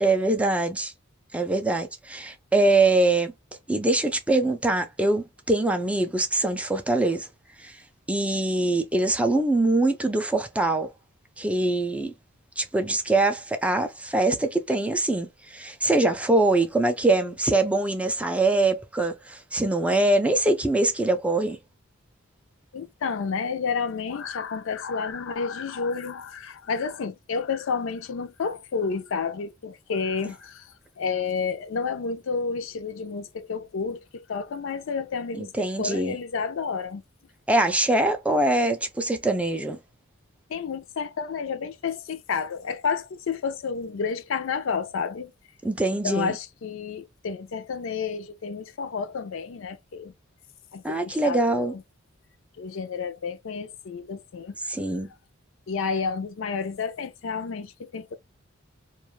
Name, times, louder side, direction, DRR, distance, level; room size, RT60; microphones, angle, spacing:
voice 1, 0.0-0.9 1.3-3.3 3.7-7.3 7.6-7.8 8.1-10.9 11.4-12.1 12.6-21.6 35.4-36.2 37.5-39.8 45.6-46.4 50.8-51.7 54.7-55.1, right 2 dB, 5° right, 0.3 m, -23 dB
voice 2, 22.7-35.5 35.8-37.0 40.5-45.3 46.0-50.1 50.7-51.8 52.6-54.6 55.7-58.1, left 5 dB, 70° left, 0.4 m, -30 dB
2.3 x 2.3 x 3.0 m
head